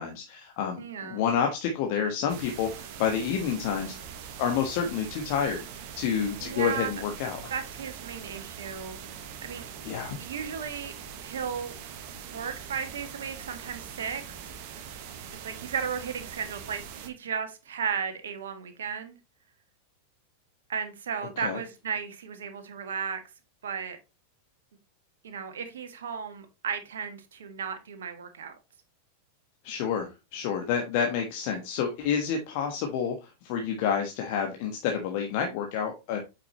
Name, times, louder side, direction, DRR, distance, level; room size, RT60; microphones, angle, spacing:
voice 1, 0.0-3.9 4.4-5.7 6.0-7.5 9.8-10.2 21.4-21.6 29.6-36.2, left 7 dB, 45° left, 1.4 m, -29 dB
voice 2, 0.8-1.2 6.4-6.9 7.5-9.1 9.4-9.6 10.2-10.9 11.2-11.7 12.3-14.4 14.7-14.9 15.4-19.2 20.7-23.2 23.6-24.0 25.2-28.5, right 6 dB, 65° right, 1.5 m, -35 dB
sound 1, 2.3-17.1, right 8 dB, 45° right, 1.2 m, -42 dB
8.4 x 5.8 x 3.0 m
figure-of-eight pair, 90°, 0 cm